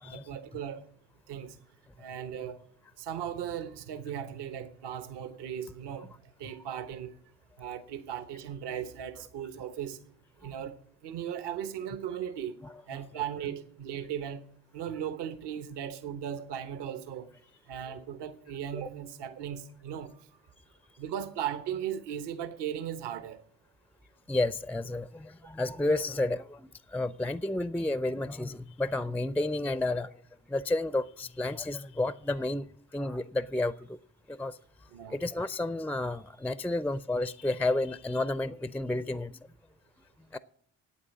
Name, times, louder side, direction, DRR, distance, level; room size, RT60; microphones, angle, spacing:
voice 1, 0.0-0.8 1.3-1.6 2.0-2.6 3.0-6.1 6.4-7.1 7.6-10.0 10.4-12.6 12.9-14.4 14.7-17.3 17.7-20.2 21.0-23.4 34.9-35.2, right 9 dB, 65° right, 1.1 m, -37 dB
voice 2, 12.6-13.0 24.3-30.1 30.5-32.7 32.9-34.0 34.3-34.6 35.1-39.4 40.3-40.4, left 2 dB, 5° left, 0.4 m, -31 dB
8.7 x 8.7 x 8.3 m
hypercardioid pair, 45°, 44 cm